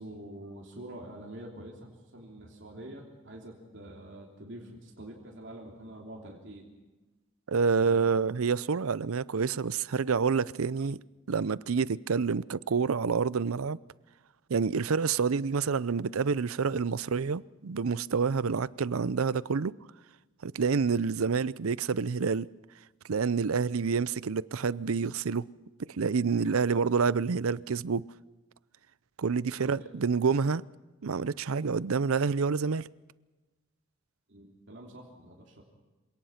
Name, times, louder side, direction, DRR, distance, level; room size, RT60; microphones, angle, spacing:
voice 1, 0.0-6.7 29.6-29.9 34.3-35.6, right 1 dB, 60° right, 3.2 m, -46 dB
voice 2, 7.5-11.0 11.3-13.8 14.5-19.8 20.4-22.5 23.1-25.5 25.8-28.1 29.2-30.7 31.0-32.9, right 5 dB, 90° right, 0.6 m, -28 dB
26.5 x 18.0 x 5.8 m
head